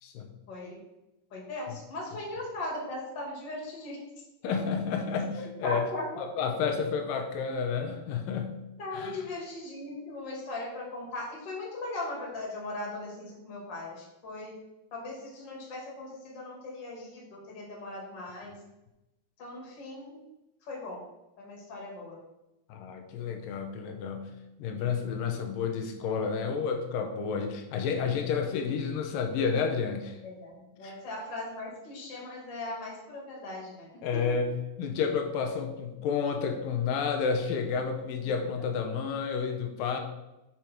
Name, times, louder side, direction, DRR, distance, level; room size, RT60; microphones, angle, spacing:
voice 1, 0.5-0.8 1.3-4.0 4.4-4.5 5.6-6.1 8.8-14.5 14.9-18.5 19.4-20.2 20.7-21.0 21.4-22.2 25.1-25.5 30.2-34.2, left 2 dB, 35° left, -3 dB, 2.3 m, -39 dB
voice 2, 4.4-5.9 6.2-8.6 8.9-9.2 18.4-18.6 22.7-24.3 24.6-30.2 30.8-31.0 34.0-40.0, left 6 dB, 70° left, 4 dB, 2.3 m, -30 dB
7.0 x 6.2 x 4.5 m, 0.95 s
omnidirectional pair, 4.6 m